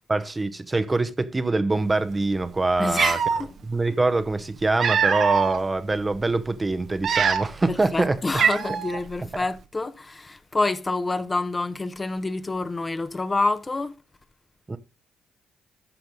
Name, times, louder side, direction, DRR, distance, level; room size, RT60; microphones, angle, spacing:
voice 1, 0.1-3.2 3.6-8.2 14.7-14.8, right 2 dB, 25° right, 0.9 m, -24 dB
Cat, 2.4-2.5 2.9-3.4 4.4-5.6 6.1-6.3 6.9-7.7 7.9-8.0 8.4-9.0, right 7 dB, 60° right, 1.1 m, -23 dB
voice 2, 2.8-3.5 7.7-13.9, left 3 dB, 30° left, 1.0 m, -27 dB
13.0 x 5.8 x 3.7 m
hypercardioid pair, 50°, 0 cm